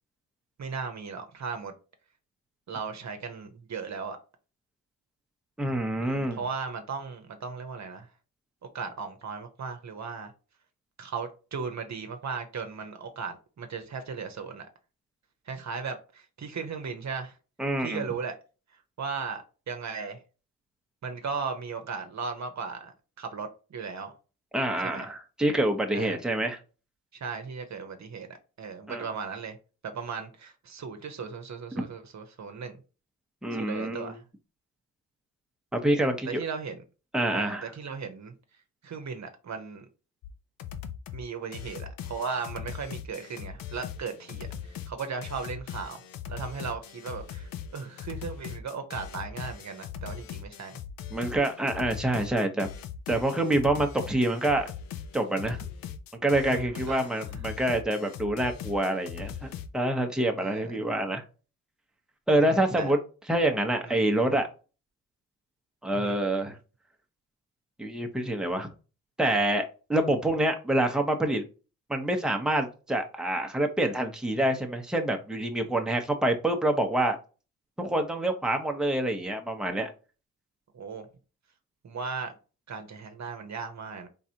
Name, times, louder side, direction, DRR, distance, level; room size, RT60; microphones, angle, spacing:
voice 1, 0.6-1.7 2.7-4.2 6.0-8.1 8.7-10.3 11.0-14.7 15.5-17.3 17.8-18.4 19.0-20.2 21.0-22.9 23.2-24.1 24.8-25.1 25.9-26.2 27.1-29.6 29.9-32.8 33.5-34.2 36.3-36.8 37.3-38.3 38.8-39.8 41.1-44.5 44.9-46.0 46.3-50.8 56.5-57.1 60.4-60.8 62.4-62.9 63.8-64.0 65.9-66.2 80.7-81.1 81.8-82.3 82.7-84.1, right 5 dB, 55° right, 1.0 m, -36 dB
voice 2, 5.6-6.4 17.6-18.0 24.5-26.6 28.9-29.1 31.7-31.8 33.4-34.2 35.7-36.4 37.1-37.7 51.1-52.7 53.1-54.7 55.1-55.6 56.2-61.2 62.3-63.0 63.3-64.5 65.8-66.6 67.8-68.7 69.2-71.4 71.9-77.2 77.8-79.9, right 1 dB, ahead, 1.0 m, -26 dB
sound 1, 40.2-40.3 40.6-41.2 41.5-59.7, left 8 dB, 85° left, 0.6 m, -40 dB
4.0 x 3.7 x 2.8 m
cardioid pair, 65°, 34 cm